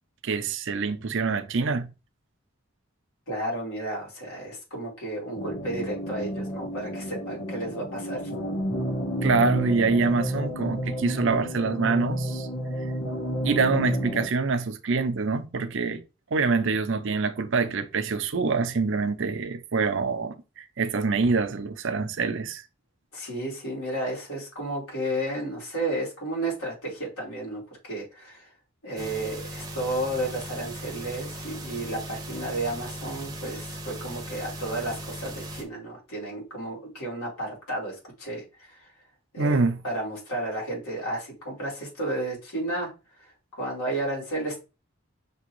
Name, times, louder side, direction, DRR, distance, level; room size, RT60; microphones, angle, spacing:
voice 1, 0.2-1.9 9.2-12.5 13.4-16.0 16.3-22.6 39.4-39.8, right 4 dB, 60° right, 0.5 m, -25 dB
voice 2, 3.3-8.3 23.1-28.5 28.8-38.9 39.3-42.9 43.5-44.6, right 1 dB, 85° left, 2.8 m, -32 dB
sound 1, 5.4-14.3, equal, 65° left, 1.2 m, -31 dB
sound 2, 29.0-35.6, right 1 dB, 15° right, 0.7 m, -38 dB
6.0 x 2.8 x 3.0 m
head